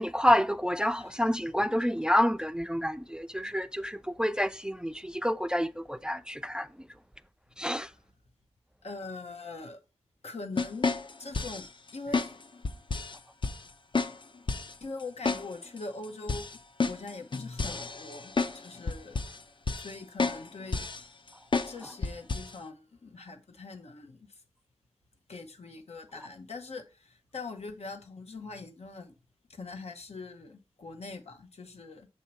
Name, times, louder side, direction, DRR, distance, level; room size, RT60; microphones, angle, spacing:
voice 1, 0.0-6.7 7.6-7.9, equal, 5° right, 0.3 m, -28 dB
voice 2, 8.8-9.8 10.2-10.9 11.2-11.7 11.9-12.4 14.8-16.6 16.8-19.2 19.7-20.9 21.6-24.4 25.3-29.1 29.5-32.1, left 3 dB, 80° left, 0.9 m, -42 dB
sound 1, 10.6-11.7 12.1-12.3 12.6-13.2 13.4-13.6 13.9-14.1 14.5-14.7 15.3-15.4 15.8-15.9 16.3-18.6 18.9-19.4 19.7-19.9 20.2-20.4 20.7-21.0 21.5-21.7 22.0-22.5, left 4 dB, 50° left, 0.5 m, -30 dB
6.4 x 2.8 x 5.6 m
cardioid pair, 45°, 11 cm